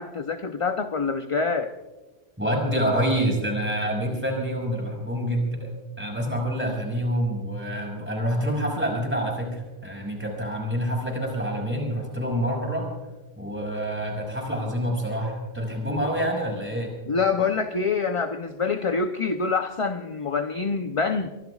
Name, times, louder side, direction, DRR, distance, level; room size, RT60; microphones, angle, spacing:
voice 1, 0.0-1.7 17.1-21.3, left 4 dB, 35° left, 7 dB, 0.6 m, -26 dB
voice 2, 2.4-5.7 6.0-12.9 13.4-16.9, equal, 10° right, -1 dB, 5.6 m, -27 dB
24.0 x 24.0 x 2.4 m, 1.2 s
omnidirectional pair, 1.1 m